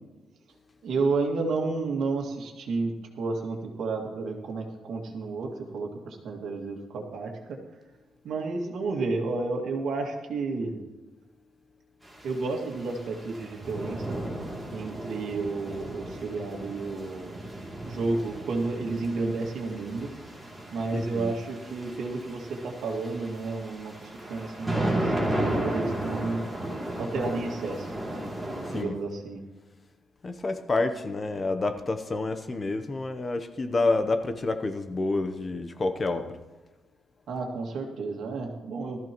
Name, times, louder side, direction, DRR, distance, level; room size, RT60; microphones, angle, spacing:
voice 1, 0.8-7.6 8.2-10.8 12.2-14.2 14.7-17.3 17.9-20.1 20.7-25.1 25.6-26.5 27.0-27.9 28.7-29.4 37.3-39.0, right 3 dB, 70° right, 2 dB, 2.1 m, -31 dB
sound 1, 12.0-28.8, right 1 dB, 5° right, 2.8 m, -34 dB
voice 2, 20.9-21.3 28.7-28.9 30.2-36.3, left 3 dB, 25° left, 9 dB, 0.8 m, -28 dB
19.0 x 13.5 x 3.0 m, 1.1 s
cardioid pair, 140°, 0 cm